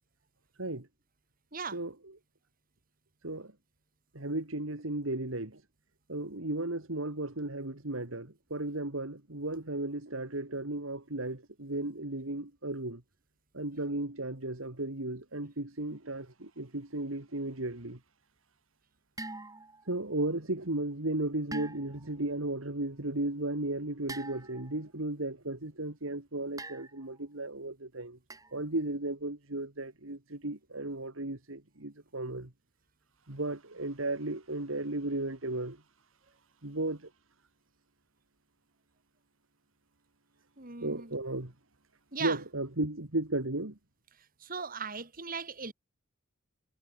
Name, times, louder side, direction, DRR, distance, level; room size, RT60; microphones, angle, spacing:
voice 1, 1.7-2.2 3.2-3.5 4.1-5.6 6.1-13.0 13.5-18.0 19.8-28.2 28.5-32.5 33.3-35.8 36.6-37.1 40.8-41.5 42.2-43.8, right 2 dB, 75° right, 2.6 m, -35 dB
sound 1, 19.2-19.9 21.5-22.1 24.1-24.8 26.6-27.2 28.3-28.6, right 2 dB, 15° right, 2.5 m, -44 dB
voice 2, 40.6-41.1 42.1-42.3 44.5-45.7, right 5 dB, 45° right, 2.8 m, -37 dB
head